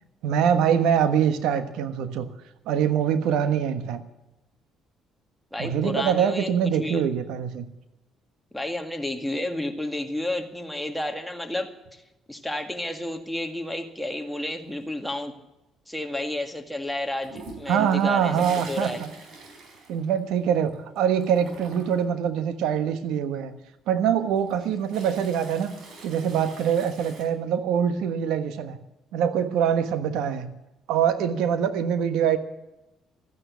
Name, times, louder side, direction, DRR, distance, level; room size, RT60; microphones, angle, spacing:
voice 1, 0.2-2.3 2.7-4.0 5.6-7.6 17.7-19.1 19.9-23.6 23.9-25.7 26.0-28.8 29.1-30.5 30.9-32.4, right 8 dB, 85° right, 10 dB, 1.3 m, -24 dB
voice 2, 5.5-7.0 8.5-11.7 12.3-15.3 15.9-19.0, left 1 dB, 5° left, 4 dB, 2.0 m, -31 dB
Toilet flush, 17.2-20.7 20.9-22.1 24.2-27.2, right 2 dB, 65° right, 4.8 m, -44 dB
13.5 x 9.6 x 8.3 m, 0.97 s
cardioid pair, 85°, 0 cm